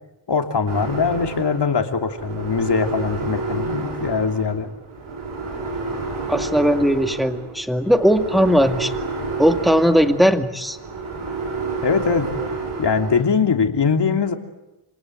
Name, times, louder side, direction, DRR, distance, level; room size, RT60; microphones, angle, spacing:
voice 1, 0.3-4.7 11.8-12.3 12.8-14.3, left 5 dB, 60° left, 5 dB, 3.1 m, -21 dB
sound 1, 0.7-13.2, right 3 dB, 90° right, 7.7 m, -30 dB
voice 2, 6.3-8.9 9.4-10.8, equal, ahead, 7 dB, 2.2 m, -18 dB
28.0 x 26.0 x 8.0 m, 1.0 s
wide cardioid pair, 90°, 47 cm